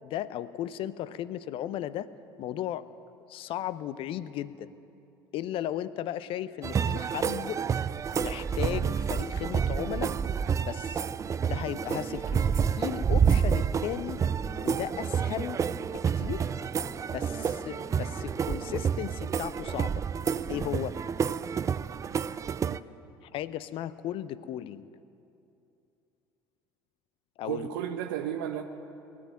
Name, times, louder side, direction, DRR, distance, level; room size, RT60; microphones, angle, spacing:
voice 1, 0.0-2.1 2.4-2.9 3.3-4.7 5.3-7.6 8.2-10.1 10.6-11.1 11.4-14.2 14.6-15.6 15.9-16.5 17.1-20.0 20.5-21.0 23.2-24.9 27.4-27.7, left 12 dB, 55° left, 16 dB, 0.6 m, -35 dB
sound 1, 6.6-22.8, right 7 dB, 30° right, 0.4 m, -29 dB
sound 2, 11.0-18.8, equal, ahead, 1.7 m, -47 dB
voice 2, 27.4-28.6, right 10 dB, 70° right, 5 dB, 0.7 m, -34 dB
19.5 x 7.7 x 9.5 m, 2.8 s
hypercardioid pair, 65°, 11 cm